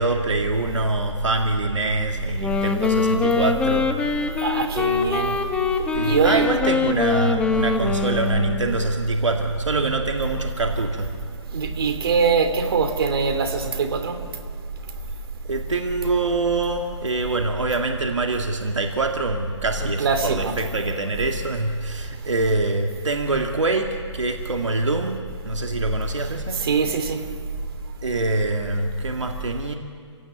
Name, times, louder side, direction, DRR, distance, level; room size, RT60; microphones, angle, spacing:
voice 1, 0.0-3.9 6.0-11.2 15.5-26.6 28.0-29.7, right 2 dB, 80° right, 2.3 m, -24 dB
Wind instrument woodwind instrument, 2.3-8.8, left 4 dB, 5° left, 1.1 m, -23 dB
voice 2, 4.4-5.3 6.0-6.4 11.5-14.2 19.8-20.5 26.6-27.2, right 5 dB, 50° right, 2.9 m, -22 dB
27.5 x 17.0 x 9.5 m
hypercardioid pair, 150°, 15 cm